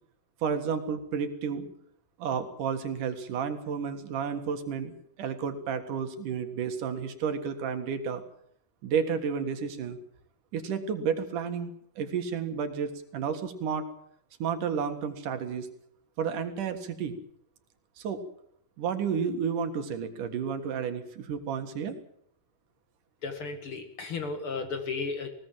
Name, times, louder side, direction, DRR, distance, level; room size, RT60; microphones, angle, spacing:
voice 1, 0.4-1.7 2.2-8.2 8.8-10.0 10.5-13.9 14.4-15.7 16.2-17.2 18.0-18.2 18.8-22.0, right 6 dB, 75° right, 7 dB, 3.3 m, -31 dB
voice 2, 23.2-25.3, left 4 dB, 45° left, 7 dB, 2.4 m, -34 dB
20.5 x 18.0 x 7.6 m, 0.66 s
omnidirectional pair, 3.7 m